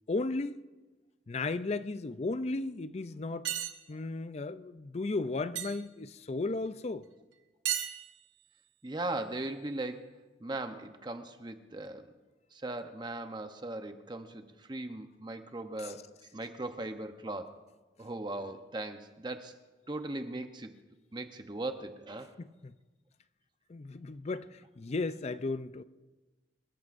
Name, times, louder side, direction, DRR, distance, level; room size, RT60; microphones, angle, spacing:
voice 1, 0.1-0.6 1.3-3.5 3.9-7.0 22.4-22.7 23.7-25.8, left 3 dB, 35° left, 0.5 m, -35 dB
sound 1, 3.4-3.7 5.5-5.8 7.6-8.5, right 10 dB, 90° right, 1.1 m, -33 dB
voice 2, 8.8-10.1 10.4-12.1 12.5-16.0 16.3-17.6 18.0-19.5 19.9-20.7 21.1-22.3, right 2 dB, 25° right, 0.8 m, -39 dB
27.0 x 14.0 x 2.6 m
head